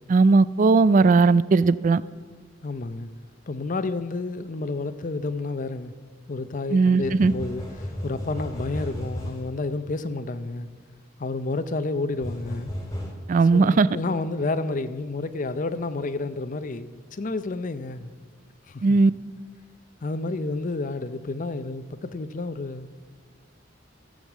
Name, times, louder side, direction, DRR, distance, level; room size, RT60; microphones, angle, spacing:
voice 1, 0.1-2.0 6.7-7.3 13.3-13.9 18.8-19.1, right 4 dB, 40° right, 0.3 m, -18 dB
voice 2, 2.6-3.1 3.5-5.9 6.3-10.7 11.2-12.7 13.5-18.1 18.7-19.0 20.0-22.9, left 3 dB, 45° left, 0.6 m, -30 dB
sound 1, 7.0-9.5 12.2-13.1, equal, 15° left, 1.9 m, -34 dB
15.5 x 6.5 x 7.3 m
head